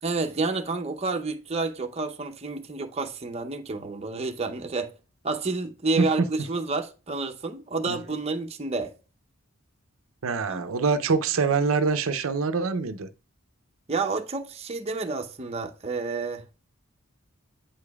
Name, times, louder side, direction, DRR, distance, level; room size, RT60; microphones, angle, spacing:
voice 1, 0.0-4.9 5.2-8.9 10.5-10.6 13.9-16.4, right 3 dB, 30° right, 0.7 m, -29 dB
voice 2, 10.2-13.1, right 4 dB, 80° right, 0.6 m, -24 dB
8.8 x 4.9 x 2.3 m
head